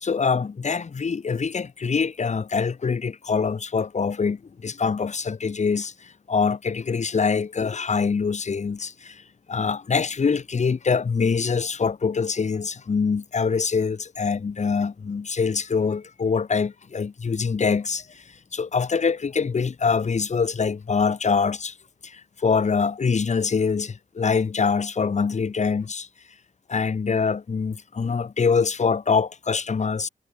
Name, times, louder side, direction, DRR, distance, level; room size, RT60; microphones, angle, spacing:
voice 1, 0.0-9.2 9.5-18.1 18.5-21.7 22.0-26.1 26.7-30.1, left 5 dB, 50° left, 2.5 m, -24 dB
cardioid pair, 95°, 16 cm